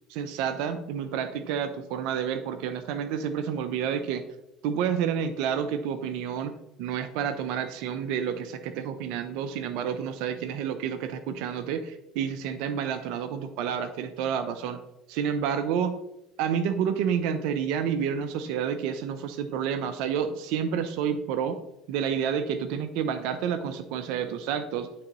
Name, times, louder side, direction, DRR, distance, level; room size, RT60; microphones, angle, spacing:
voice 1, 0.1-4.2 4.6-6.5 6.8-14.8 15.1-15.9 16.4-21.6 21.9-24.9, right 8 dB, 75° right, 10 dB, 0.6 m, -29 dB
11.5 x 3.8 x 3.0 m, 0.86 s
supercardioid pair, 85°, 0 cm